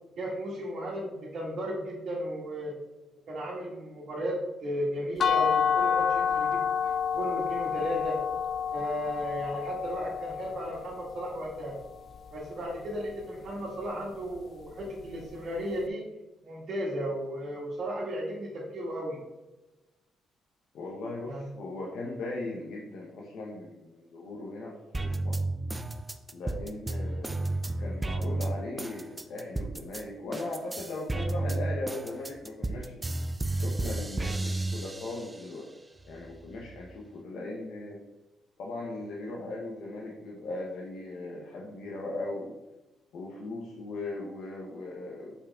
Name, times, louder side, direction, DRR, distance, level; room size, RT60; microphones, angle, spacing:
voice 1, 0.2-2.7 3.3-8.2 8.7-11.8 12.3-16.0 16.4-19.2 21.2-21.5, equal, 60° right, -7 dB, 1.8 m, -35 dB
sound 1, 5.2-11.0, left 7 dB, 50° left, 0.4 m, -28 dB
voice 2, 20.7-25.4 26.3-33.0 33.6-35.7 36.1-38.0 38.6-42.6 43.1-45.3, left 2 dB, 75° left, -3 dB, 1.0 m, -38 dB
sound 2, 24.9-30.0 30.3-35.5 36.0-36.9, right 2 dB, 15° right, 0.4 m, -32 dB
5.3 x 4.9 x 3.6 m, 1.1 s
cardioid pair, 90°, 0 cm